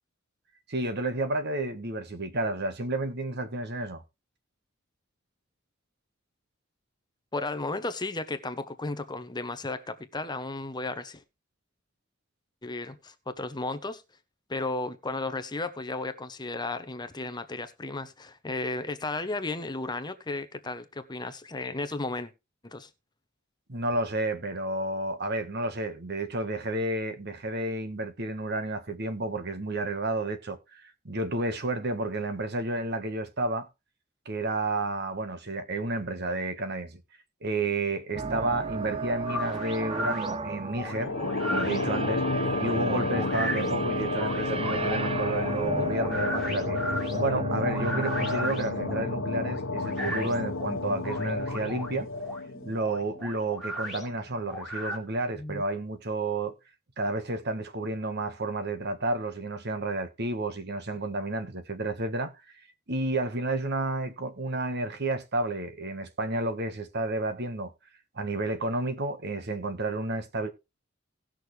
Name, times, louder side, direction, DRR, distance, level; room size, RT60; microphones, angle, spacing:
voice 1, 0.7-4.0 23.7-33.7 34.2-37.0 37.4-41.1 41.5-46.8 47.1-52.1 52.6-56.5 57.0-62.3 62.9-67.7 68.1-70.5, right 2 dB, 55° right, 1.4 m, -31 dB
voice 2, 7.3-11.2 12.6-14.0 14.5-22.3 22.6-22.9 41.2-41.3 45.6-45.9 55.4-55.6, left 2 dB, 20° left, 0.9 m, -34 dB
sound 1, 38.1-50.3, right 3 dB, 30° right, 0.5 m, -36 dB
sound 2, 39.2-55.0, equal, ahead, 2.2 m, -37 dB
sound 3, 40.8-53.4, left 3 dB, 85° left, 1.1 m, -31 dB
18.0 x 6.3 x 3.2 m
head